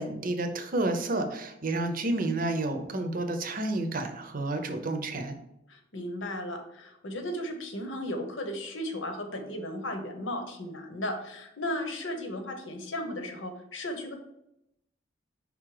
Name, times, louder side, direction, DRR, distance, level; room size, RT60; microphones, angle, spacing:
voice 1, 0.0-5.4, right 2 dB, 45° right, 7 dB, 0.7 m, -30 dB
voice 2, 5.7-14.1, left 1 dB, 75° left, 4 dB, 1.1 m, -35 dB
5.2 x 3.8 x 4.9 m, 0.82 s
head